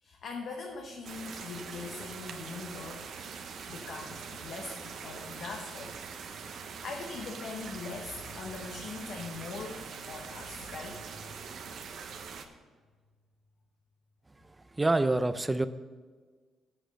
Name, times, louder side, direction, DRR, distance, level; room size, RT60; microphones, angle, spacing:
voice 1, 0.0-3.1 3.7-6.0 6.4-11.3, left 4 dB, 65° left, 2 dB, 1.0 m, -42 dB
sound 1, 1.0-12.5, right 6 dB, 65° right, 0.9 m, -43 dB
voice 2, 14.8-15.7, right 2 dB, 15° right, 12 dB, 0.5 m, -26 dB
7.8 x 6.6 x 6.3 m, 1.4 s
cardioid pair, 90°, 0 cm